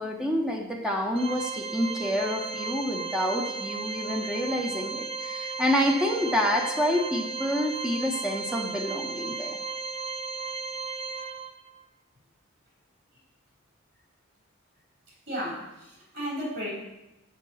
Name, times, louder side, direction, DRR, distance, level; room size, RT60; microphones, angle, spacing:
voice 1, 0.0-9.6, equal, 5° right, 0 dB, 0.8 m, -28 dB
Organ, 1.2-11.8, right 4 dB, 25° right, 0.3 m, -35 dB
voice 2, 15.3-16.7, equal, 50° right, -3 dB, 3.5 m, -34 dB
6.5 x 5.1 x 6.9 m, 0.90 s
head